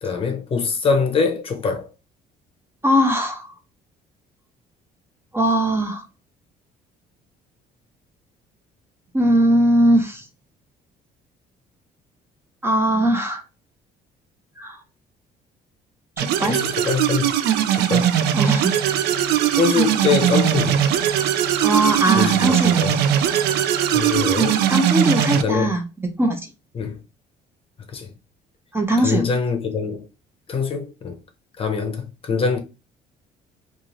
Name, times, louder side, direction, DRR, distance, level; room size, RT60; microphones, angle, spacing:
voice 1, 0.0-1.9 16.5-17.3 17.7-18.2 19.6-20.8 22.1-23.0 23.9-24.7 25.4-25.8 26.7-27.0 27.9-28.1 29.0-30.1 30.5-31.2 31.6-32.6, left 5 dB, 35° left, 0.7 m, -23 dB
voice 2, 2.8-3.5 5.3-6.0 9.1-10.2 12.6-13.4 14.6-14.8 16.2-16.6 18.3-18.7 21.6-22.8 24.7-25.8 26.2-26.4 28.7-29.2, right 1 dB, 15° right, 0.5 m, -19 dB
sound 1, 16.2-25.4, right 10 dB, 75° right, 0.4 m, -20 dB
2.6 x 2.4 x 3.0 m
cardioid pair, 110°, 17 cm